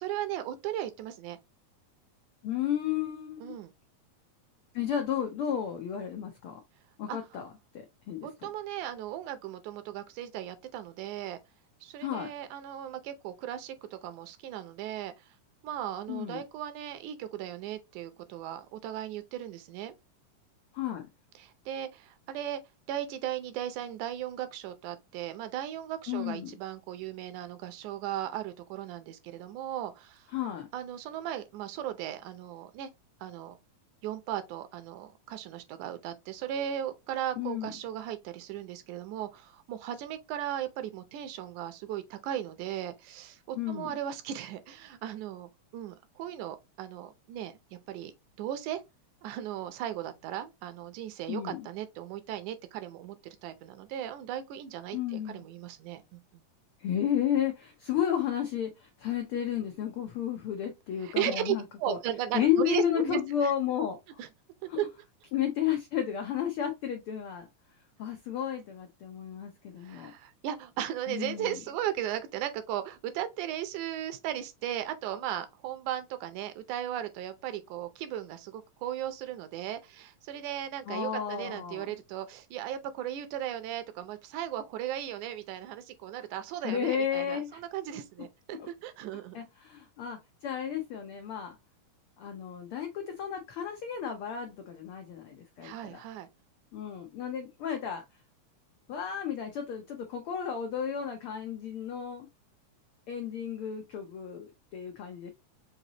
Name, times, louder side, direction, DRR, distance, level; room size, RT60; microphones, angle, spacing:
voice 1, 0.0-1.4 3.4-3.7 7.1-7.4 8.2-11.4 11.8-15.1 15.6-19.9 21.4-22.6 22.9-30.3 30.7-32.9 33.2-33.6 34.0-48.1 48.4-48.8 49.2-56.4 61.0-63.5 64.2-64.3 64.8-64.9 69.8-89.5 95.6-96.3, right 11 dB, 80° right, 2.1 m, -37 dB
voice 2, 2.4-3.5 4.7-6.6 7.0-8.3 12.0-12.3 16.1-16.4 20.7-21.1 26.1-26.5 30.3-30.7 37.4-37.7 43.6-43.9 51.3-51.7 54.9-55.5 56.8-62.0 62.3-64.2 64.7-64.9 65.3-67.5 68.0-70.1 71.1-71.5 80.9-81.9 86.6-87.6 88.6-88.7 89.3-91.6 92.2-96.0 96.7-98.0 98.9-102.3 103.1-105.3, left 9 dB, 90° left, 1.2 m, -32 dB
5.7 x 2.8 x 2.8 m
omnidirectional pair, 3.5 m